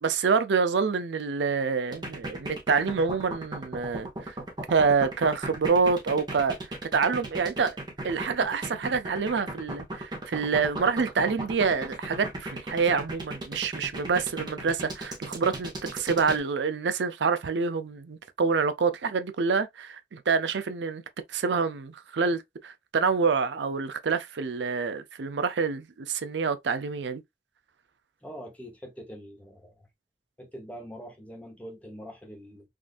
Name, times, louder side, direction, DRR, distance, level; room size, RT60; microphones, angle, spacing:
voice 1, 0.0-4.3 4.7-7.8 8.0-21.0 21.3-27.2, right 5 dB, 80° right, 0.5 m, -27 dB
sound 1, 1.9-16.4, right 1 dB, 25° right, 0.9 m, -36 dB
voice 2, 28.2-29.9 30.4-32.7, equal, 10° left, 0.9 m, -43 dB
3.6 x 2.6 x 2.4 m
head